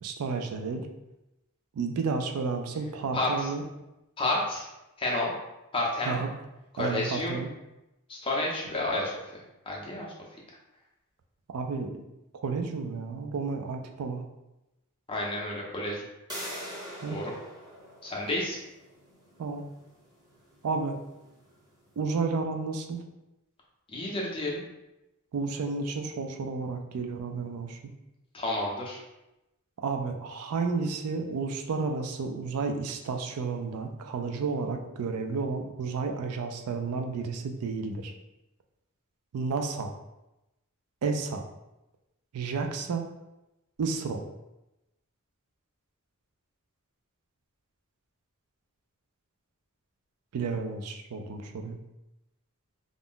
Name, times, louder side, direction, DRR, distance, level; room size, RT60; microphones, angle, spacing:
voice 1, 0.0-0.9 1.7-3.6 6.0-6.3 6.8-7.5 8.8-8.9 11.5-12.0 12.4-14.2 17.0-17.2 19.4-19.6 20.6-21.0 22.0-23.0 25.3-27.8 29.8-38.1 39.3-39.9 41.0-41.5 42.3-43.1 43.8-44.2 50.3-51.8, right 4 dB, 80° right, 4 dB, 0.4 m, -31 dB
voice 2, 3.1-3.5 4.2-4.7 5.0-5.3 5.7-6.2 6.7-7.4 8.1-9.1 9.7-10.1 15.1-16.0 17.1-17.3 18.0-18.6 23.9-24.6 28.3-29.0, left 1 dB, 25° left, -3 dB, 0.6 m, -30 dB
sound 1, 16.3-21.9, equal, 20° right, 1.0 m, -44 dB
2.5 x 2.1 x 3.6 m, 0.94 s
head